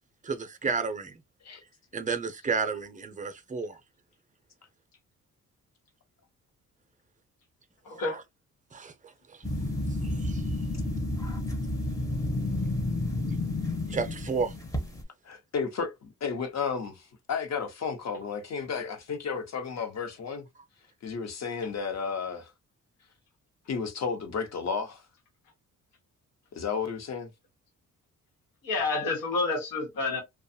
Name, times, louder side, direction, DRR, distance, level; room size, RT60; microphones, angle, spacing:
voice 1, 0.2-1.2 1.9-3.8 8.1-8.2 8.7-9.4 10.0-10.4 13.9-14.5, right 4 dB, 25° right, 0.6 m, -32 dB
voice 2, 7.8-8.2 28.6-30.2, left 3 dB, 90° left, 1.2 m, -29 dB
sound 1, 9.4-15.0, left 2 dB, 10° left, 0.7 m, -31 dB
voice 3, 15.2-20.5 21.0-22.5 23.7-25.0 26.5-27.3, left 6 dB, 55° left, 1.0 m, -33 dB
2.5 x 2.3 x 2.7 m
cardioid pair, 90°, 33 cm